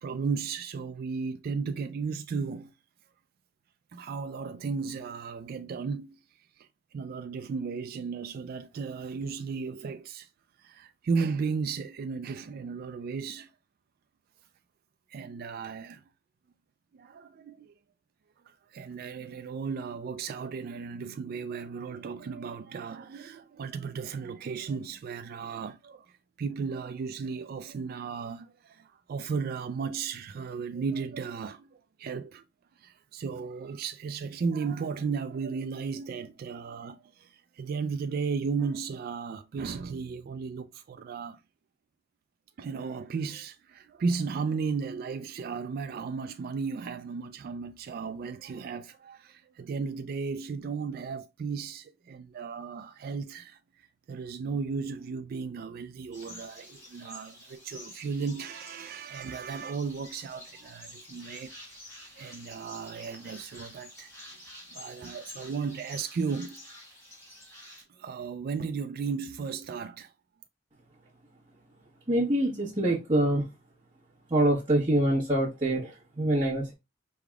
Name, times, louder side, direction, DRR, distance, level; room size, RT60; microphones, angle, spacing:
voice 1, 0.0-2.7 3.9-6.2 6.6-10.3 10.6-13.5 15.1-16.0 16.9-17.7 18.5-32.4 32.8-41.4 42.6-61.5 62.2-64.1 64.7-66.6 67.9-70.1, right 5 dB, 50° right, 0.3 m, -35 dB
sound 1, 56.1-67.8, left 1 dB, 15° left, 2.2 m, -49 dB
voice 2, 72.1-73.5 74.3-76.7, right 1 dB, 30° right, 1.2 m, -25 dB
4.7 x 3.4 x 2.3 m
head